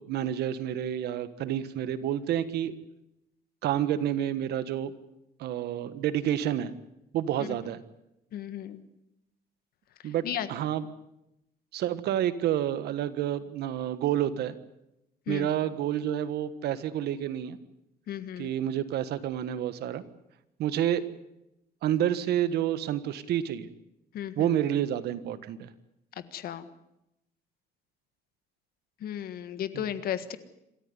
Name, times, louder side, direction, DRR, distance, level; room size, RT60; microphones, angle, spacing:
voice 1, 0.0-2.7 3.6-4.9 5.4-6.7 7.1-7.8 10.0-10.9 11.7-14.5 15.3-17.6 18.4-20.0 20.6-21.0 21.8-23.7 24.4-25.7 29.7-29.8, right 11 dB, 80° right, 13 dB, 1.5 m, -29 dB
voice 2, 8.3-8.9 10.2-10.5 15.3-15.5 18.1-18.5 24.1-24.5 26.3-26.7 29.0-30.4, left 10 dB, 65° left, 12 dB, 1.6 m, -34 dB
27.0 x 14.0 x 9.6 m, 0.86 s
cardioid pair, 155°, 17 cm